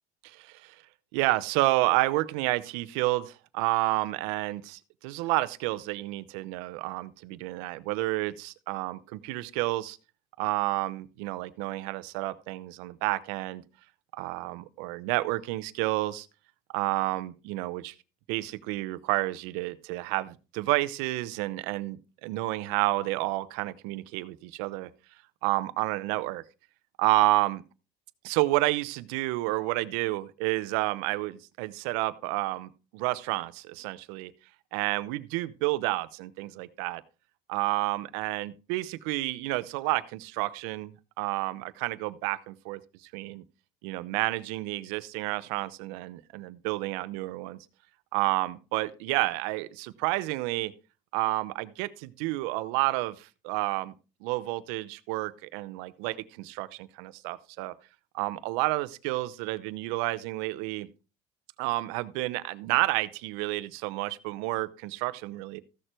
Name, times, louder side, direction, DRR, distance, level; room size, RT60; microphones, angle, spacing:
voice 1, 0.2-0.7 1.1-10.0 10.4-13.6 14.2-16.3 16.7-17.9 18.3-24.9 25.4-26.4 27.0-27.6 28.2-34.3 34.7-37.0 37.5-40.9 41.2-42.8 43.1-43.4 43.8-47.6 48.1-50.7 51.1-53.9 54.2-57.7 58.1-60.9 61.6-65.6, right 19 dB, 90° right, 16 dB, 0.8 m, -30 dB
14.5 x 6.7 x 4.5 m, 0.32 s
supercardioid pair, 90°, 14 cm